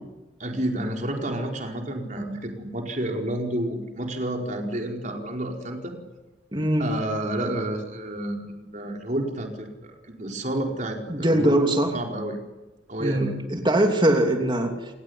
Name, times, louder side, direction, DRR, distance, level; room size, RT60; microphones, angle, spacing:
voice 1, 0.4-5.9 6.8-11.6 11.9-12.4 12.9-13.3, right 1 dB, 40° right, 2 dB, 4.8 m, -30 dB
voice 2, 6.5-6.9 11.1-11.9 13.0-14.7, right 1 dB, 25° right, 4 dB, 3.0 m, -21 dB
29.5 x 19.0 x 10.0 m, 1.1 s
head